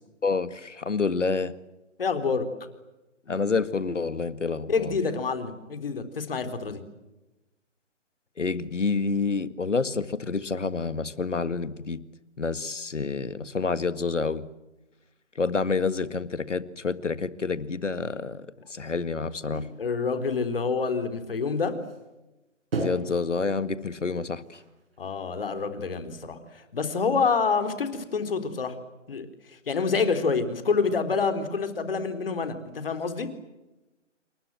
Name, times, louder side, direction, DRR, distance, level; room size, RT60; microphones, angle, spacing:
voice 1, 0.2-1.5 3.3-4.9 8.4-12.0 12.4-14.4 15.4-19.7 22.8-24.6, left 4 dB, 75° left, 14 dB, 2.0 m, -28 dB
voice 2, 2.0-2.5 4.7-6.8 19.8-21.8 25.0-28.8 29.1-33.3, left 5 dB, 50° left, 9 dB, 4.0 m, -27 dB
sound 1, 19.5-19.9 20.2-20.7 21.2-21.3 21.5-22.0 22.7-25.2, right 3 dB, 50° right, 6.5 m, -35 dB
28.5 x 25.0 x 7.7 m, 1.0 s
figure-of-eight pair, 145°, 37 cm